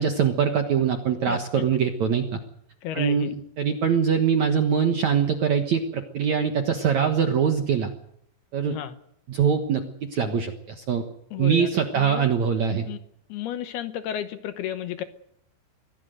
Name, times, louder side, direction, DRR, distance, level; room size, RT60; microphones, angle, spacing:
voice 1, 0.0-2.4 2.9-7.9 8.5-8.8 9.3-9.8 10.1-11.1 11.4-12.9, right 7 dB, 60° right, 6 dB, 1.9 m, -23 dB
voice 2, 1.3-1.6 2.8-3.3 8.7-9.0 11.3-12.3 12.9-13.0 13.3-15.0, left 10 dB, 75° left, 11 dB, 2.7 m, -33 dB
24.0 x 17.0 x 7.9 m, 0.73 s
omnidirectional pair, 5.2 m